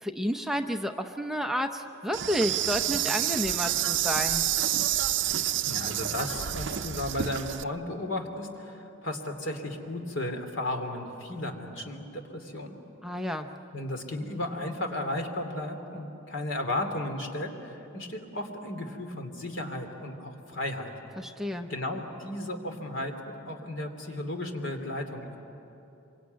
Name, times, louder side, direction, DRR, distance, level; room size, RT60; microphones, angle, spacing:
voice 1, 0.0-4.5 13.0-13.5 21.2-21.7, equal, ahead, 4 dB, 0.7 m, -30 dB
Insect, 2.1-7.6, right 12 dB, 65° right, 0.6 m, -28 dB
voice 2, 5.6-12.8 13.7-20.9 21.7-23.1 23.4-25.4, left 1 dB, 75° left, 4 dB, 3.0 m, -34 dB
26.0 x 24.5 x 9.4 m, 3.0 s
head